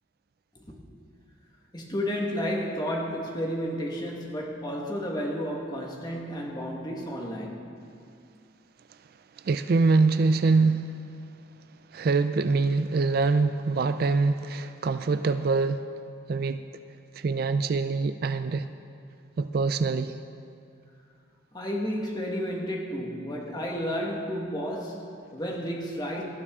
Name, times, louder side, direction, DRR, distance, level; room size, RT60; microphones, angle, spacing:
voice 1, 1.7-7.7 21.5-26.2, equal, 20° left, 1.5 m, -32 dB
voice 2, 9.4-10.9 11.9-15.8 16.3-16.6 17.2-18.7 19.4-20.1, right 4 dB, 50° right, 0.3 m, -24 dB
18.5 x 12.0 x 3.7 m
head